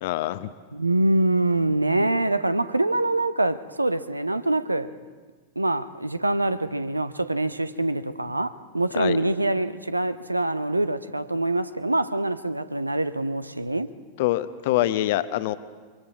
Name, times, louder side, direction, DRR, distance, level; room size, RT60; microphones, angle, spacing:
voice 1, 0.0-0.5 9.0-9.2 14.2-15.5, left 15 dB, 50° left, 0.8 m, -25 dB
voice 2, 0.7-4.9 5.6-13.9, right 2 dB, 85° right, 0.7 m, -25 dB
26.5 x 23.0 x 4.8 m
figure-of-eight pair, 90°, 0 cm